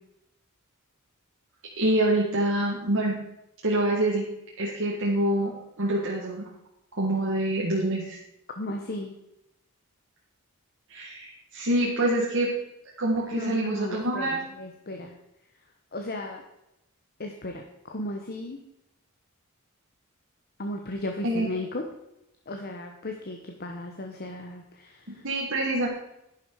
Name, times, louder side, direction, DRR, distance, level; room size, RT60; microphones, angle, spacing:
voice 1, 1.8-3.2 3.6-6.5 6.9-8.2 10.9-12.6 13.0-14.4 21.2-21.5 25.1-25.9, right 1 dB, 60° right, -3 dB, 1.9 m, -26 dB
voice 2, 8.6-9.2 13.3-14.3 14.6-15.1 15.9-16.4 17.2-18.6 20.6-21.8 22.5-25.2, left 1 dB, 45° left, 4 dB, 1.1 m, -35 dB
11.0 x 10.5 x 4.8 m, 0.86 s
head